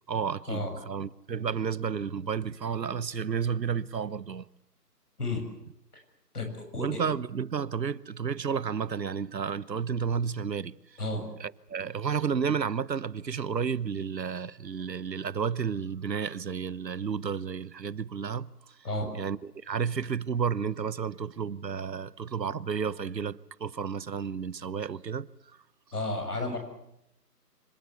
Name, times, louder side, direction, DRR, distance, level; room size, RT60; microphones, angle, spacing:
voice 1, 0.1-4.5 6.8-10.7 11.4-18.5 19.1-25.3, right 6 dB, 90° right, 1.1 m, -31 dB
voice 2, 6.3-7.0 11.0-11.2 18.8-19.1 25.9-26.6, left 2 dB, 65° left, 7.4 m, -32 dB
25.5 x 18.5 x 8.2 m
figure-of-eight pair, 175°, 49 cm